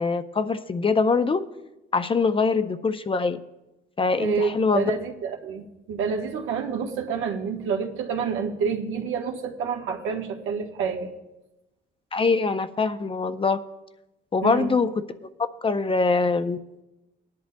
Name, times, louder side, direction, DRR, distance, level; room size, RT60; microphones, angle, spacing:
voice 1, 0.0-1.5 1.9-3.4 4.0-4.9 12.1-13.6 14.3-15.0 15.6-16.6, left 4 dB, 25° left, 10 dB, 0.6 m, -23 dB
voice 2, 4.2-11.1 14.4-14.7, right 6 dB, 85° right, 1 dB, 1.3 m, -28 dB
19.0 x 10.5 x 2.2 m, 0.97 s
cardioid pair, 90°, 20 cm